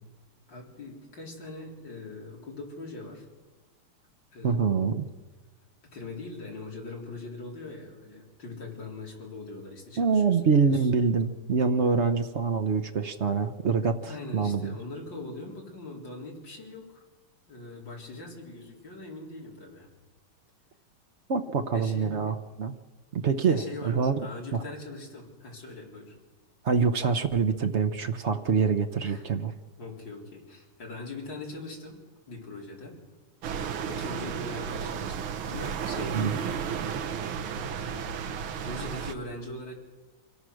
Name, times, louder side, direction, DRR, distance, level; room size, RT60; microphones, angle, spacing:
voice 1, 0.5-3.3 4.3-4.9 5.9-10.9 14.0-17.0 17.5-19.9 21.7-22.2 23.5-26.2 29.0-29.2 29.8-32.0 32.3-33.0 33.9-37.0 37.8-39.7, left 2 dB, 60° left, -2 dB, 4.5 m, -41 dB
voice 2, 4.4-5.0 10.0-14.8 21.3-22.7 23.1-24.1 24.5-24.6 26.6-29.5 36.1-36.3, right 5 dB, 60° right, 8 dB, 0.7 m, -25 dB
sound 1, 33.4-39.1, right 7 dB, 80° right, 1.9 m, -33 dB
26.0 x 18.0 x 6.4 m, 1.3 s
omnidirectional pair, 2.3 m